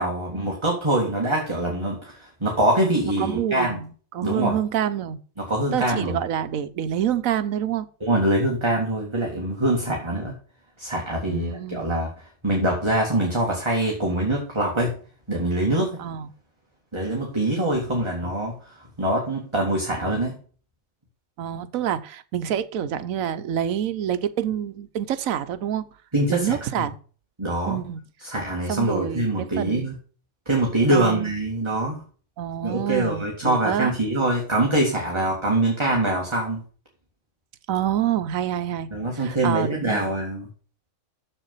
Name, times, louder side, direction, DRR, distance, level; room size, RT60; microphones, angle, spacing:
voice 1, 0.0-3.8 4.2-4.6 5.4-6.2 8.0-10.3 10.8-12.1 12.4-14.9 15.3-16.0 16.9-20.4 26.1-26.9 27.4-27.8 28.2-29.9 30.5-32.0 32.6-36.6 38.9-40.5, right 1 dB, 20° right, 2.1 m, -24 dB
voice 2, 3.0-5.2 5.7-7.9 11.3-11.9 16.0-16.3 21.4-25.9 26.3-26.9 27.7-28.0 28.7-29.9 30.9-31.3 32.4-33.9 37.7-38.9 39.2-40.1, right 10 dB, 90° right, 1.2 m, -27 dB
7.4 x 6.9 x 5.6 m
omnidirectional pair, 1.4 m